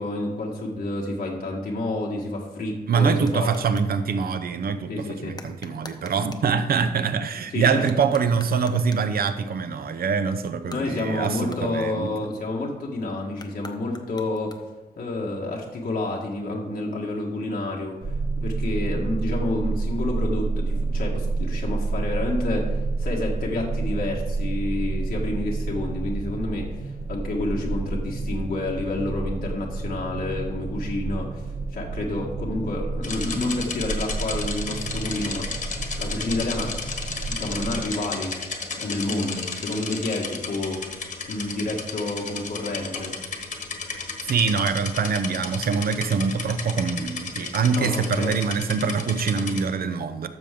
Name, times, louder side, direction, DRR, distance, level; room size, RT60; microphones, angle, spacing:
voice 1, 0.0-3.5 4.9-5.4 6.2-6.3 7.5-7.8 10.7-14.6 15.0-31.4 31.7-35.5 36.0-36.8 37.3-38.3 38.7-43.2 47.7-48.3, left 2 dB, 85° left, -2 dB, 1.6 m, -29 dB
voice 2, 2.9-12.1 44.2-50.3, right 5 dB, 80° right, 10 dB, 0.7 m, -24 dB
sound 1, 3.2-4.0 5.3-6.5 7.7-9.2 10.5-12.4 13.3-14.9, left 3 dB, 25° left, 0.8 m, -46 dB
sound 2, 18.0-37.8, right 3 dB, 45° right, 0.8 m, -29 dB
sound 3, 33.0-49.6, left 4 dB, 60° left, 1.4 m, -34 dB
12.5 x 7.0 x 3.7 m, 1.2 s
wide cardioid pair, 145°, 15 cm